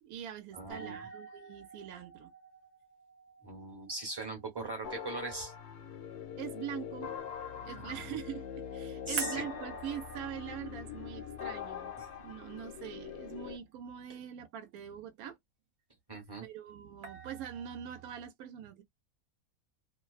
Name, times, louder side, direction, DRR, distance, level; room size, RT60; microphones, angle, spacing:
voice 1, 0.0-2.3 6.4-7.1 7.6-8.4 8.7-15.4 16.4-18.8, right 9 dB, 75° right, 1.1 m, -43 dB
voice 2, 0.5-1.1 3.4-5.5 7.8-8.2 9.0-9.4 12.0-12.1 16.1-16.5, right 2 dB, 20° right, 0.8 m, -40 dB
sound 1, 0.7-5.7 9.2-13.3 17.0-18.2, right 5 dB, 55° right, 0.9 m, -47 dB
sound 2, 4.8-13.6, left 8 dB, 60° left, 0.7 m, -43 dB
2.6 x 2.0 x 2.3 m
omnidirectional pair, 1.6 m